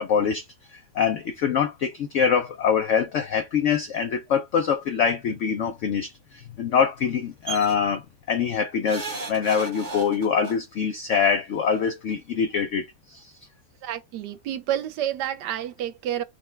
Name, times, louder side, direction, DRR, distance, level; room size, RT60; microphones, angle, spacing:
voice 1, 0.0-13.3, left 7 dB, 90° left, 0.6 m, -24 dB
sound 1, 7.5-7.7 8.9-10.5 11.7-11.8 12.1-12.2, right 3 dB, 35° right, 0.8 m, -35 dB
voice 2, 13.8-16.2, right 11 dB, 80° right, 1.2 m, -29 dB
6.5 x 2.2 x 3.2 m
omnidirectional pair, 1.9 m